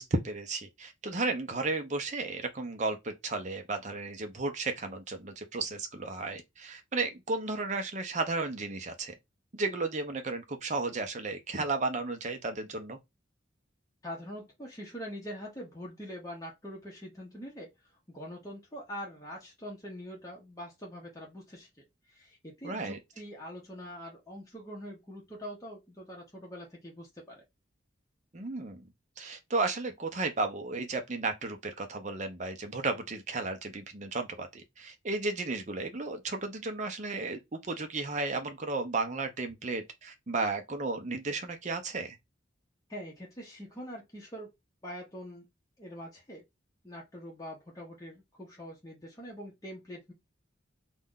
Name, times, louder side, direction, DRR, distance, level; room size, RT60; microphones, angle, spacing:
voice 1, 0.0-9.1 9.5-13.0 22.6-23.0 28.3-28.9 29.2-42.2, right 3 dB, 35° right, 0.6 m, -34 dB
voice 2, 14.0-17.7 18.1-21.7 22.1-27.4 42.9-44.5 44.8-45.5 45.8-46.4 46.8-50.1, equal, 15° left, 0.7 m, -44 dB
2.5 x 2.2 x 3.6 m
head